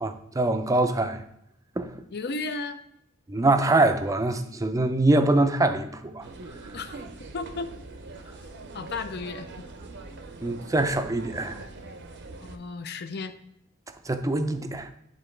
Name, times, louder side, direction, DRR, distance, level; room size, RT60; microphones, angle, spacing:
voice 1, 0.0-1.2 1.8-1.9 3.3-6.3 10.4-11.6 14.1-14.9, right 2 dB, 15° right, 0.5 m, -24 dB
voice 2, 2.1-2.8 6.7-7.0 7.3-7.7 8.7-9.6 12.4-13.3, left 3 dB, 50° left, 0.5 m, -34 dB
sound 1, 6.2-12.6, right 3 dB, 55° right, 0.7 m, -42 dB
10.5 x 3.9 x 3.2 m
head